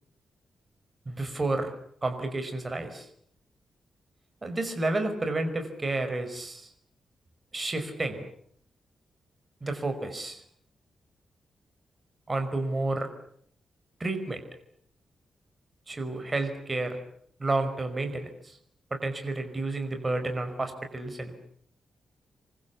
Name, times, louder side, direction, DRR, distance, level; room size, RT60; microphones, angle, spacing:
voice 1, 1.1-1.7 2.0-3.1 4.4-6.7 7.5-8.3 9.6-10.4 12.3-13.1 14.0-14.4 15.9-17.0 17.4-18.6 18.9-21.3, right 2 dB, 20° right, 6 dB, 5.2 m, -30 dB
28.0 x 24.5 x 8.4 m, 0.66 s
wide cardioid pair, 150°, 0 cm